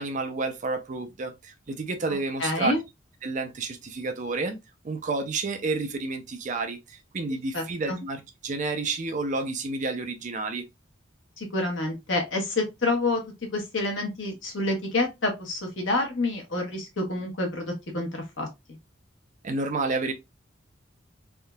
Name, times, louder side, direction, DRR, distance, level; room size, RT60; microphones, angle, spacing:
voice 1, 0.0-2.8 3.2-4.6 4.8-10.7 19.4-20.1, right 3 dB, 40° right, 0.5 m, -30 dB
voice 2, 2.4-2.8 7.5-8.0 11.4-13.2 13.5-18.5, left 2 dB, 75° left, 1.1 m, -28 dB
3.5 x 2.7 x 2.2 m
head